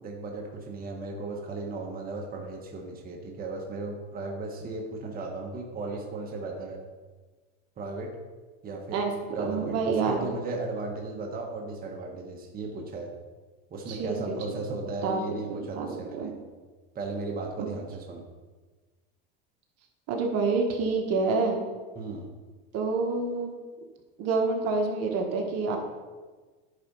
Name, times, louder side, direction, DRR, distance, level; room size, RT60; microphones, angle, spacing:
voice 1, 0.0-6.8 7.8-8.1 8.6-9.0 9.2-13.1 13.7-16.3 16.9-18.2 21.9-22.3, right 3 dB, 30° right, 0 dB, 1.4 m, -36 dB
voice 2, 9.4-10.3 13.9-14.2 15.0-15.2 15.5-16.3 20.1-21.6 22.7-23.5 24.2-25.8, right 4 dB, 55° right, 2 dB, 1.5 m, -27 dB
9.8 x 4.2 x 5.5 m, 1.3 s
supercardioid pair, 120°, 29 cm